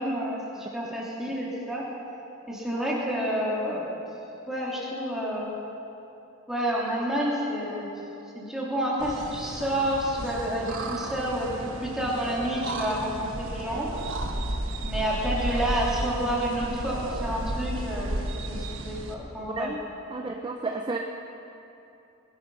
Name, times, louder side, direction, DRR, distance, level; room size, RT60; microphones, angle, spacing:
voice 1, 0.0-1.8 2.5-4.0 4.5-5.5 6.5-7.9 8.3-13.9 14.8-18.1 18.5-19.7, equal, ahead, -6 dB, 3.0 m, -29 dB
sound 1, 9.0-19.1, right 1 dB, 60° right, 1.2 m, -33 dB
voice 2, 20.1-21.0, right 3 dB, 20° right, 3 dB, 0.6 m, -31 dB
21.0 x 12.5 x 5.5 m, 2.9 s
head